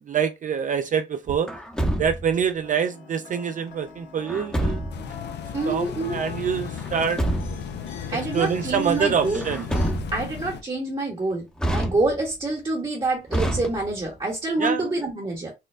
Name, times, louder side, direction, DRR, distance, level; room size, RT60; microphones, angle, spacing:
voice 1, 0.0-1.5 2.0-4.8 5.7-7.2 8.3-9.6 14.6-14.9, right 7 dB, 40° right, 0.4 m, -25 dB
Truck, 1.5-2.4 4.3-5.1 6.8-7.8 9.3-10.4 11.6-12.4 13.3-14.2, right 1 dB, 5° left, 0.8 m, -27 dB
sound 1, 2.6-9.9, left 4 dB, 75° left, 1.3 m, -43 dB
sound 2, 4.9-10.6, left 8 dB, 60° left, 0.5 m, -36 dB
voice 2, 5.5-6.2 8.1-9.5 10.1-15.5, right 2 dB, 25° right, 1.0 m, -27 dB
4.3 x 2.2 x 2.4 m
cardioid pair, 90°, 20 cm